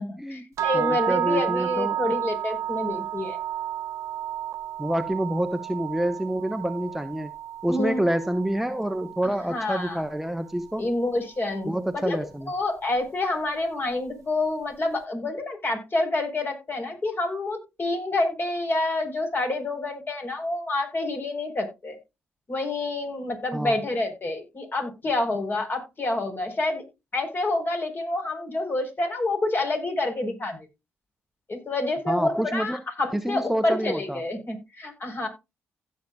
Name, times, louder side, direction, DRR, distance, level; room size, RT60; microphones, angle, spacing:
voice 1, 0.0-3.4 7.7-8.0 9.2-10.0 10.8-11.7 12.0-12.2 12.5-22.0 22.5-26.8 27.1-30.7 31.5-35.3, left 2 dB, 40° left, 4.3 m, -28 dB
sound 1, 0.6-10.6, right 12 dB, 75° right, 0.6 m, -32 dB
voice 2, 0.7-2.0 4.8-7.3 7.6-10.8 11.6-12.5 23.5-23.8 32.1-32.8 33.1-34.2, right 1 dB, 5° right, 0.9 m, -27 dB
16.0 x 6.6 x 2.3 m
supercardioid pair, 50°, 5 cm